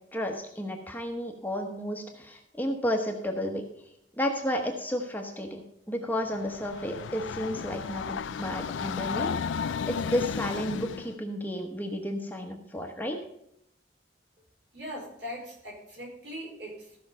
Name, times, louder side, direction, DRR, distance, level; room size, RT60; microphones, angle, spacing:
voice 1, 0.1-3.6 4.1-9.3 9.6-13.2, equal, 10° left, 3 dB, 1.0 m, -32 dB
Train, 6.2-11.2, left 6 dB, 85° left, 0.4 m, -33 dB
voice 2, 14.7-17.0, equal, 65° right, -2 dB, 5.0 m, -40 dB
15.0 x 6.1 x 5.5 m, 0.76 s
head